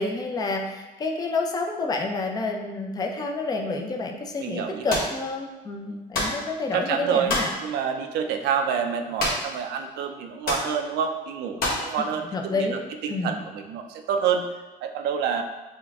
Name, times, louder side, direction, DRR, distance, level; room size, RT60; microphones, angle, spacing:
voice 1, 0.0-7.5 12.3-12.8 13.1-13.3, left 3 dB, 25° left, 2 dB, 0.5 m, -29 dB
voice 2, 4.4-5.0 5.9-6.0 6.7-14.5 14.8-15.4, right 7 dB, 80° right, 6 dB, 0.5 m, -28 dB
sound 1, 4.9-5.1 6.1-6.4 7.3-7.6 9.2-9.6 9.8-9.9 10.4-10.7 11.6-11.9, left 2 dB, 60° left, 1.3 m, -26 dB
6.1 x 2.2 x 3.5 m, 1.1 s
cardioid pair, 110°, 17 cm